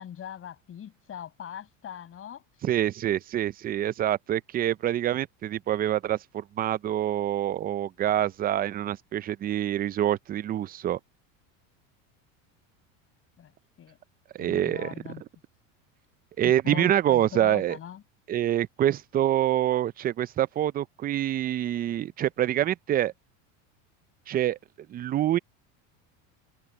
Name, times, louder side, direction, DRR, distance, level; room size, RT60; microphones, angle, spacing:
voice 1, 0.0-2.6 13.4-13.5 13.8-14.0 14.4-15.2 16.4-18.0, left 9 dB, 35° left, 6.4 m, -41 dB
voice 2, 2.6-11.0 14.3-14.9 16.4-17.8 18.3-23.1 24.3-24.6 24.9-25.4, right 12 dB, 25° right, 0.4 m, -26 dB
open air
supercardioid pair, 125°, 40 cm